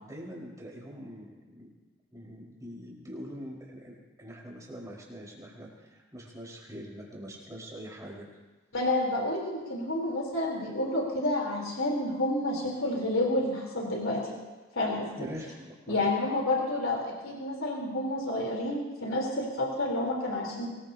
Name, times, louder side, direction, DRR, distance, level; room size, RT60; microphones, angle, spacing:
voice 1, 0.0-1.3 1.5-1.7 2.1-8.3 15.2-16.1, equal, 15° right, -3 dB, 4.8 m, -43 dB
voice 2, 8.7-14.4 14.8-15.3 15.9-20.7, left 1 dB, 80° left, -1 dB, 3.8 m, -29 dB
24.0 x 20.5 x 2.9 m, 1.2 s
head